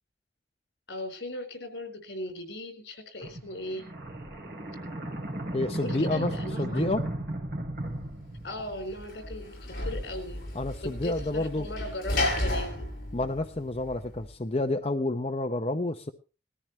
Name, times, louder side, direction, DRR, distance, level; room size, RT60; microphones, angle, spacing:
voice 1, 0.9-3.8 5.8-6.8 8.4-10.4 10.8-12.9, left 1 dB, 75° left, 6 dB, 4.2 m, -38 dB
sound 1, 3.2-9.1, right 1 dB, 55° right, 3.3 m, -35 dB
voice 2, 5.5-6.3 6.6-7.0 10.5-11.7 13.1-16.1, left 2 dB, 35° left, 5 dB, 0.7 m, -29 dB
Sliding door / Slam, 8.4-14.2, left 1 dB, 50° left, 7.1 m, -33 dB
19.5 x 14.0 x 3.1 m, 0.32 s
head